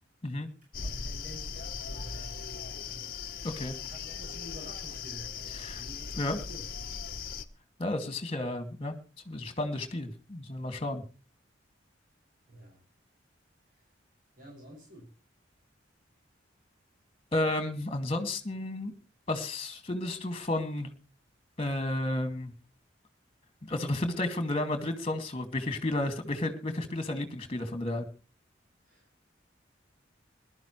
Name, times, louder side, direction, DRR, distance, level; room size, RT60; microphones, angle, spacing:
sound 1, 0.7-7.4, left 6 dB, 50° left, 1.1 m, -39 dB
voice 1, 0.7-3.6 3.8-6.7 12.5-12.8 13.7-13.8 14.4-15.1 28.8-29.2, equal, 45° right, -1 dB, 6.6 m, -50 dB
voice 2, 3.4-3.8 5.6-5.8 6.2-6.4 7.8-9.0 9.3-11.0 17.3-18.9 19.3-20.9 21.6-22.5 23.7-28.1, left 1 dB, 30° left, 7 dB, 2.3 m, -32 dB
21.0 x 12.0 x 3.2 m, 0.33 s
head